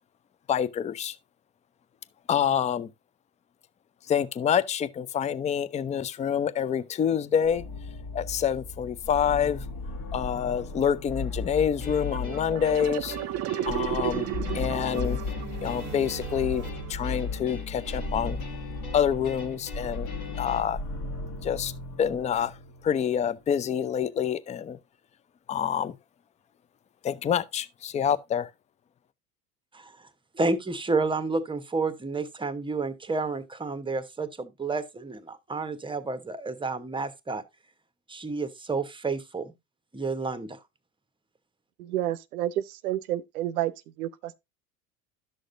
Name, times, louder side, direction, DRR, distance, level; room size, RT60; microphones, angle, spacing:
voice 1, 0.5-1.2 2.3-2.9 4.1-7.6 8.1-9.6 10.1-13.2 13.7-14.3 14.5-15.2 15.6-18.4 18.9-20.1 20.4-20.8 21.4-21.7 22.0-22.6 22.8-24.8 25.5-25.9 27.0-28.5, left 8 dB, 15° left, 0.4 m, -27 dB
sound 1, 7.4-23.1, left 3 dB, 45° left, 1.5 m, -36 dB
sound 2, 11.8-20.6, left 6 dB, 75° left, 2.1 m, -44 dB
sound 3, 12.0-17.4, right 13 dB, 35° right, 0.6 m, -34 dB
voice 2, 29.7-30.1 30.3-37.4 38.1-39.5 39.9-40.6, right 3 dB, 10° right, 0.9 m, -30 dB
voice 3, 41.8-43.7 44.0-44.4, right 13 dB, 75° right, 0.7 m, -30 dB
11.5 x 6.4 x 2.5 m
hypercardioid pair, 75°, 43 cm